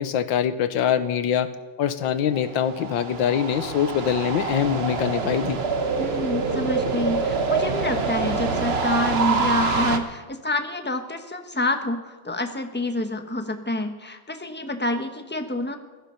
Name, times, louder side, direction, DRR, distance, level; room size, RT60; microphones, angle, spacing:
voice 1, 0.0-1.5 1.8-5.6, left 9 dB, 85° left, 12 dB, 1.7 m, -23 dB
sound 1, 2.3-10.0, right 4 dB, 40° right, 1.2 m, -26 dB
voice 2, 6.0-15.8, left 1 dB, 10° left, 6 dB, 0.8 m, -27 dB
17.0 x 14.0 x 5.7 m, 1.2 s
omnidirectional pair, 2.0 m